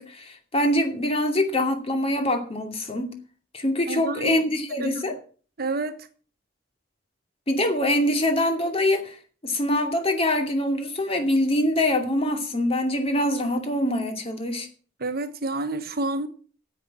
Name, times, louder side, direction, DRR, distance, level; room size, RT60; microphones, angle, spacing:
voice 1, 0.0-3.1 3.5-5.1 7.5-9.2 9.4-14.7, left 1 dB, 30° left, 2.5 m, -24 dB
voice 2, 3.9-4.4 4.8-5.0 5.6-6.1 15.0-16.3, right 2 dB, 55° right, 1.2 m, -29 dB
10.0 x 8.0 x 7.5 m
head